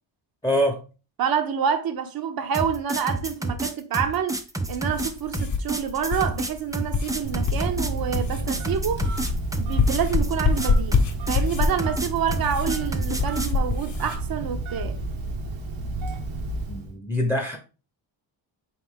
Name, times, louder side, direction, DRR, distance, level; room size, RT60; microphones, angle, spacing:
voice 1, 0.4-0.8 16.7-17.6, equal, 5° left, 0.8 m, -24 dB
voice 2, 1.2-4.4 4.7-9.1 9.5-11.0 11.3-15.0, right 7 dB, 50° right, 0.7 m, -27 dB
sound 1, 2.5-13.6, right 2 dB, 10° right, 0.4 m, -29 dB
sound 2, 4.7-14.2, left 4 dB, 40° left, 0.8 m, -27 dB
Telephone, 7.2-16.9, right 2 dB, 75° right, 1.0 m, -31 dB
4.2 x 3.2 x 3.5 m
cardioid pair, 105°, 47 cm